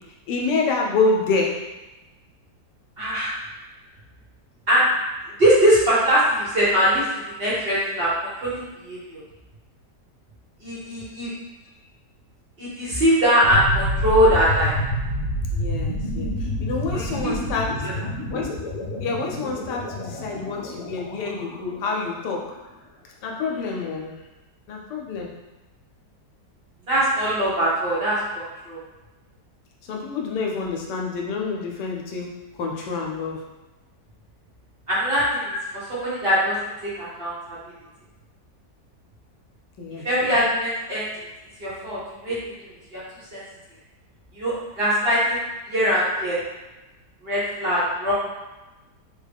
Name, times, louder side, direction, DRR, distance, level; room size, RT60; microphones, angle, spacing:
voice 1, 0.3-1.6 15.5-17.9 18.3-18.6 19.0-22.5 23.2-24.2 24.7-25.3 29.9-33.4 35.5-35.6 39.8-40.3, left 4 dB, 85° left, 0 dB, 1.2 m, -27 dB
voice 2, 3.0-3.3 4.7-4.8 5.4-7.0 7.4-8.1 8.4-9.2 10.6-11.3 12.6-14.7 16.9-17.3 26.9-28.8 34.9-35.5 36.0-36.5 37.0-37.6 40.0-41.1 41.6-42.0 42.2-42.4 42.9-43.0 43.3-43.4 44.3-45.4 45.7-46.4 47.2-48.1, equal, 45° right, -9 dB, 1.0 m, -21 dB
sound 1, 13.4-22.3, equal, 65° left, 1.1 m, -28 dB
3.4 x 2.2 x 3.4 m, 1.1 s
omnidirectional pair, 1.8 m